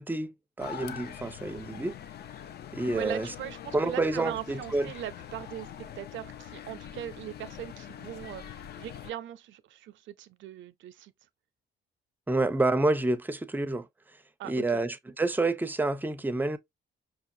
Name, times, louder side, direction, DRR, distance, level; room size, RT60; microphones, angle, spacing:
voice 1, 0.0-2.0 2.7-3.3 3.7-4.9 12.3-13.9 14.4-16.6, right 2 dB, 10° right, 0.5 m, -28 dB
sound 1, 0.6-9.1, left 9 dB, 55° left, 0.4 m, -44 dB
voice 2, 2.9-11.1 14.4-14.8, right 12 dB, 70° right, 0.5 m, -40 dB
5.2 x 2.4 x 2.6 m
cardioid pair, 90°, 20 cm